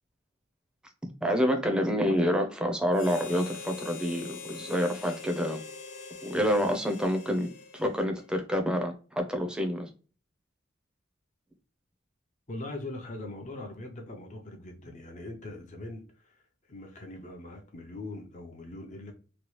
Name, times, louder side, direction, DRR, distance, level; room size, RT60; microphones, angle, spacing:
voice 1, 1.2-5.6 6.2-9.9, equal, 5° right, 0.6 m, -28 dB
Harmonica, 2.9-8.4, left 5 dB, 80° left, 0.7 m, -44 dB
voice 2, 12.5-16.4 16.7-19.1, left 2 dB, 40° left, 0.6 m, -41 dB
3.0 x 2.3 x 3.0 m
head